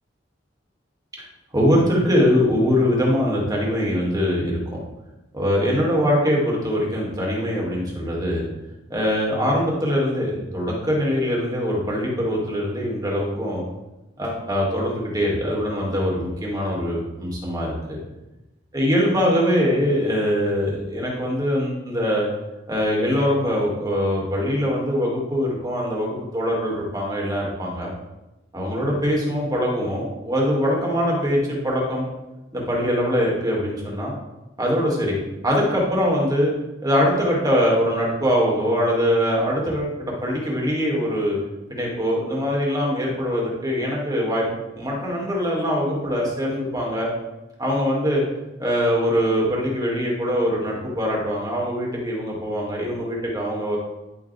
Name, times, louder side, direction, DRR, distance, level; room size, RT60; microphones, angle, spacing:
voice 1, 1.5-4.8 5.3-8.5 8.9-13.6 14.2-18.0 18.7-22.3 22.7-27.9 28.5-32.1 32.5-34.1 34.6-35.2 35.4-36.5 36.8-41.4 41.7-47.1 47.6-48.2 48.6-53.8, equal, 20° right, -3 dB, 2.3 m, -22 dB
10.5 x 7.0 x 3.4 m, 1.0 s
head